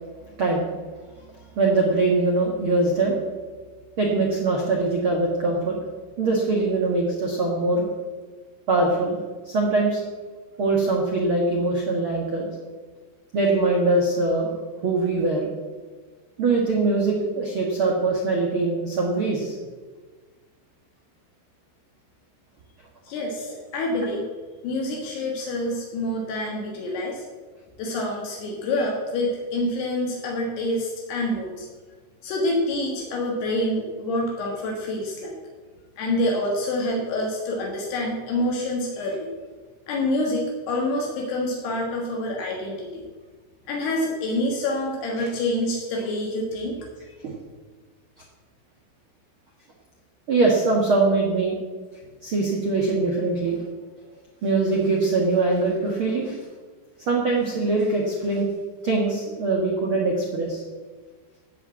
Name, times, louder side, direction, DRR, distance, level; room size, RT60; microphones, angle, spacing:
voice 1, 1.5-3.2 4.0-5.8 6.2-7.9 8.7-9.1 9.4-10.0 10.6-12.5 13.3-14.6 14.8-15.5 16.4-19.5 23.4-23.5 24.9-25.0 45.2-45.3 47.2-47.3 50.3-51.5 52.2-53.6 54.4-56.4 57.1-58.5 58.8-60.6, right 3 dB, 70° right, -1 dB, 1.2 m, -22 dB
voice 2, 23.1-24.3 24.6-27.3 27.8-31.7 32.2-35.3 36.0-39.3 39.9-43.0 43.7-46.8, left 1 dB, 75° left, -1 dB, 3.5 m, -27 dB
14.5 x 5.3 x 8.3 m, 1.4 s
omnidirectional pair, 4.8 m